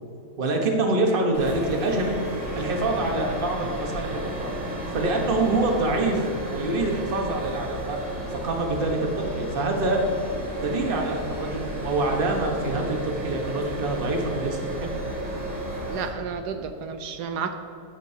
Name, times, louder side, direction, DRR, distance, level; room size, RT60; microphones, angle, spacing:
voice 1, 0.4-2.2 2.6-4.5 4.9-8.0 8.3-10.0 10.6-14.9, right 2 dB, 35° right, 2 dB, 1.2 m, -26 dB
sound 1, 1.3-16.1, right 1 dB, 55° right, 2.8 m, -33 dB
voice 2, 15.9-17.6, right 6 dB, 80° right, 7 dB, 1.2 m, -31 dB
13.0 x 8.9 x 2.8 m, 2.9 s
omnidirectional pair, 1.7 m